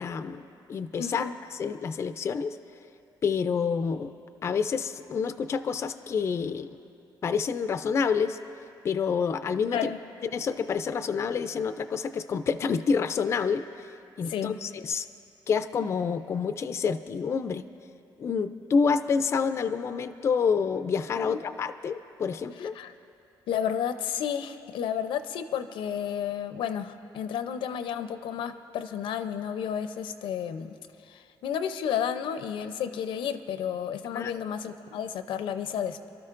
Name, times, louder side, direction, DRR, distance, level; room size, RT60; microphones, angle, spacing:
voice 1, 0.0-2.6 3.2-4.1 4.4-6.7 7.2-8.4 8.8-9.9 10.2-13.9 14.2-15.1 15.5-17.6 18.2-22.7 34.1-34.3, left 6 dB, 35° left, 11 dB, 0.3 m, -28 dB
voice 2, 1.0-1.3 9.7-10.0 14.3-14.6 21.3-21.4 22.8-22.9 23.5-30.8 31.1-36.1, left 8 dB, 90° left, 10 dB, 0.6 m, -32 dB
28.5 x 12.5 x 2.5 m, 2.6 s
cardioid pair, 170°, 8 cm